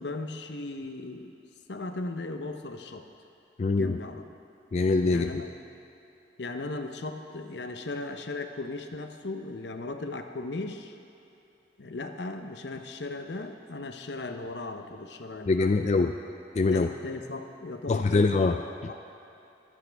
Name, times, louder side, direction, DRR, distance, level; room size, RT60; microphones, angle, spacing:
voice 1, 0.0-1.3 1.7-3.1 3.8-4.2 5.1-5.5 6.4-11.0 11.8-16.1 16.7-18.4 18.9-19.0, left 2 dB, 75° left, 6 dB, 0.8 m, -37 dB
voice 2, 3.6-4.0 4.7-5.3 15.5-16.1 16.6-16.9 17.9-18.6 18.8-19.0, left 3 dB, 40° left, 5 dB, 0.3 m, -23 dB
22.5 x 8.4 x 3.4 m, 2.8 s
head